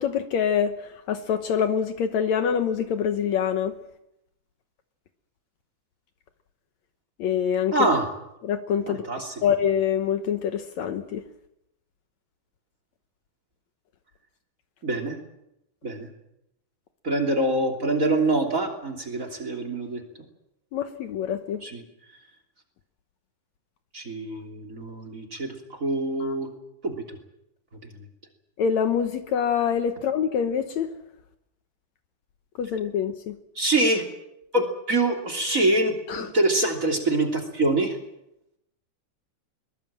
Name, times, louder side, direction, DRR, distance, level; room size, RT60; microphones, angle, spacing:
voice 1, 0.0-3.7 7.2-7.7 8.4-9.0 9.4-11.2 20.7-21.6 26.2-26.3 28.6-30.9 32.6-33.4 36.1-36.3, left 8 dB, 70° left, 8 dB, 2.2 m, -25 dB
voice 2, 7.7-8.1 8.9-9.3 14.8-15.2 15.8-16.1 17.0-20.0 21.6-21.8 23.9-26.5 26.8-27.2 33.5-34.0 34.5-38.0, right 2 dB, 25° right, 7 dB, 3.2 m, -25 dB
22.5 x 21.5 x 7.6 m, 0.85 s
omnidirectional pair, 3.6 m